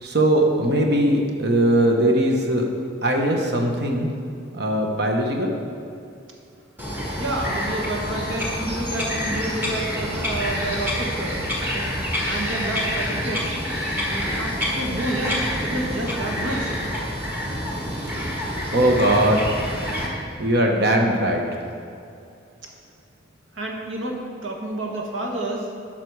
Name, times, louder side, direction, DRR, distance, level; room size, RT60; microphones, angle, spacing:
voice 1, 0.0-2.7 3.0-4.1 4.5-5.5 18.7-19.5 20.4-21.4, right 1 dB, 55° right, 2 dB, 1.1 m, -20 dB
Bird vocalization bird call bird song, 6.8-20.1, equal, 10° right, 1.4 m, -27 dB
voice 2, 7.1-11.9 12.2-13.5 14.4-16.8 23.5-25.7, right 1 dB, 80° right, 0 dB, 1.5 m, -29 dB
11.0 x 6.0 x 4.8 m, 2.6 s
head